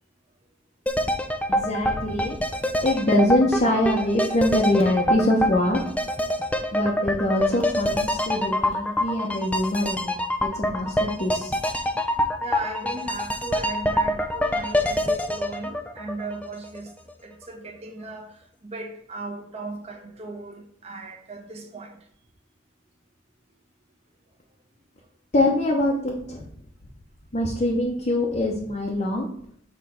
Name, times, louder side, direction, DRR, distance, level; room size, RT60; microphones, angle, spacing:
sound 1, 0.9-16.8 17.1-17.2, left 1 dB, 5° left, 0.4 m, -26 dB
voice 1, 1.5-2.4 2.8-5.8 6.7-10.1 10.4-11.6 25.3-26.5 27.3-29.3, left 1 dB, 35° left, -2 dB, 0.8 m, -23 dB
voice 2, 12.4-16.9 17.2-18.3 18.6-22.0, right 3 dB, 30° right, 2 dB, 1.1 m, -37 dB
6.6 x 3.3 x 5.6 m, 0.64 s
head